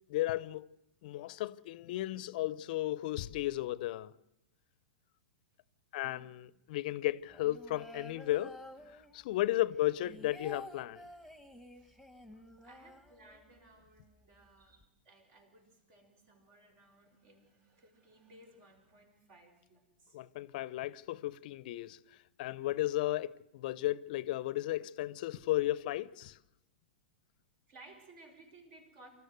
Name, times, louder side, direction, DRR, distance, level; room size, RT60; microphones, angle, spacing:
voice 1, 0.1-0.7 1.0-4.1 5.9-8.6 8.9-11.0 20.1-22.0 22.4-26.4, left 15 dB, 55° left, 0.7 m, -34 dB
voice 2, 6.0-6.4 8.7-8.9 9.8-10.1 11.7-11.9 12.6-20.2 27.7-29.1, right 2 dB, 50° right, 6.2 m, -59 dB
sound 1, 7.3-9.4 9.7-13.7 14.0-14.1 14.3-14.8, left 1 dB, 5° right, 1.9 m, -51 dB
25.5 x 14.0 x 8.2 m
hypercardioid pair, 105°, 5 cm